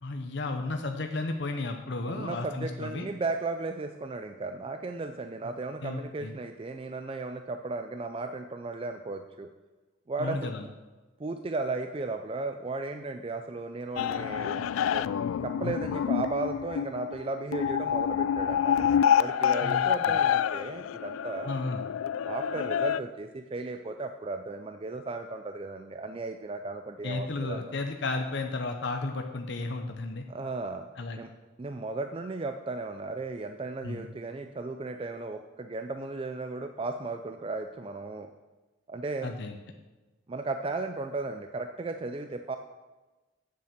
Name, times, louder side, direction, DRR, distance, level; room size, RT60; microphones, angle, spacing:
voice 1, 0.0-3.1 5.8-6.3 10.2-10.6 19.6-20.2 21.5-21.8 27.0-30.2 31.0-31.2 33.8-34.1 39.2-39.5, left 3 dB, 55° left, 4 dB, 0.7 m, -33 dB
voice 2, 2.1-9.5 10.1-10.5 11.2-15.1 15.4-18.9 19.2-21.5 22.2-27.7 30.3-30.9 31.2-31.3 31.6-38.3 38.9-39.3 40.3-42.6, right 3 dB, 25° right, 7 dB, 0.4 m, -35 dB
sound 1, 14.0-23.0, left 8 dB, 80° left, 0.3 m, -27 dB
8.5 x 7.6 x 6.6 m, 1.2 s
head